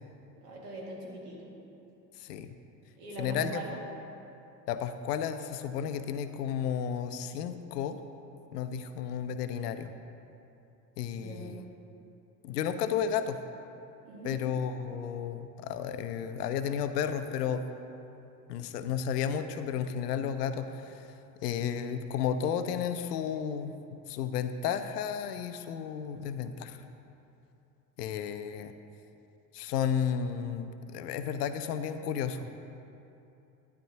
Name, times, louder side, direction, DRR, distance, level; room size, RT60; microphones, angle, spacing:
voice 1, 0.4-1.5 3.0-3.8 11.1-11.7 14.0-14.5, right 2 dB, 70° right, -3 dB, 2.1 m, -42 dB
voice 2, 2.2-2.5 3.2-3.6 4.7-8.0 8.5-9.9 11.0-11.7 12.4-13.4 14.2-17.6 18.5-21.1 21.4-23.7 24.1-26.8 28.0-28.7 29.5-32.5, left 8 dB, 70° left, 10 dB, 0.6 m, -33 dB
11.5 x 10.5 x 2.8 m, 2.8 s
figure-of-eight pair, 65°, 49 cm